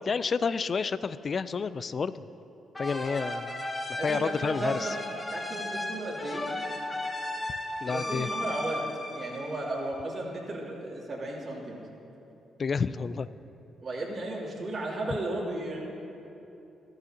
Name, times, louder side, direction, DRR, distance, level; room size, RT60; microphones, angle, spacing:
voice 1, 0.0-2.1 2.8-3.6 3.9-4.9 7.8-8.3 12.6-13.3, left 5 dB, 50° left, 15 dB, 0.3 m, -30 dB
sound 1, 2.7-10.2, left 1 dB, 20° left, 2.1 m, -35 dB
voice 2, 4.0-5.0 5.3-6.4 7.9-8.9 9.1-11.9 13.8-15.8, right 1 dB, 55° right, -3 dB, 2.8 m, -34 dB
14.5 x 14.0 x 2.8 m, 2.9 s
hypercardioid pair, 45°, 0 cm